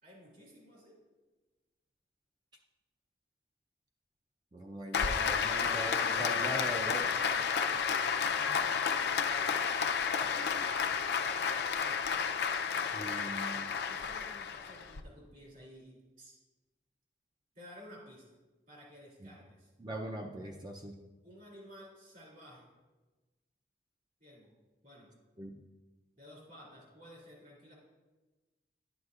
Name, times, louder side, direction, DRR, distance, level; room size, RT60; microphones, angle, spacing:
voice 1, 0.0-1.0 6.7-8.0 8.3-8.9 13.8-16.4 17.5-18.3 18.7-19.7 21.2-22.7 24.2-24.5 24.8-25.1 26.2-27.7, equal, 45° right, -4 dB, 2.7 m, -54 dB
voice 2, 4.5-7.0 12.9-13.7 19.2-19.3 19.8-21.0 25.4-25.6, right 1 dB, 25° right, 1 dB, 0.5 m, -41 dB
Applause, 4.9-15.0, left 6 dB, 65° left, 0.4 m, -31 dB
11.5 x 7.9 x 2.4 m, 1.2 s
head